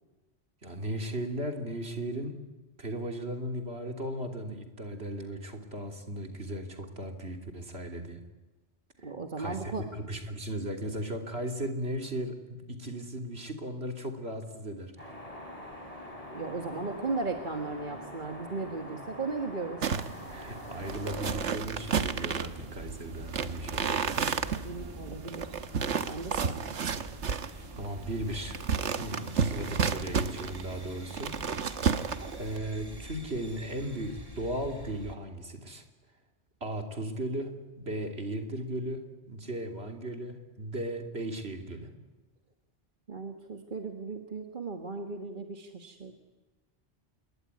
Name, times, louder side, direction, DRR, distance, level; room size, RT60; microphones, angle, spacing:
voice 1, 0.6-2.3 2.8-8.2 9.4-15.1 20.3-24.0 27.8-31.8 32.3-35.8 36.6-41.9, right 1 dB, 60° right, 5 dB, 3.3 m, -36 dB
voice 2, 9.0-9.9 16.3-19.9 24.6-26.6 43.1-46.1, right 3 dB, 45° right, 5 dB, 1.8 m, -36 dB
sound 1, 15.0-21.5, left 1 dB, 30° left, 4.9 m, -44 dB
sound 2, 19.8-32.6, right 6 dB, 85° right, 1.5 m, -32 dB
sound 3, 20.8-35.2, right 1 dB, 20° right, 2.6 m, -45 dB
27.0 x 22.0 x 9.8 m, 1.2 s
omnidirectional pair, 1.2 m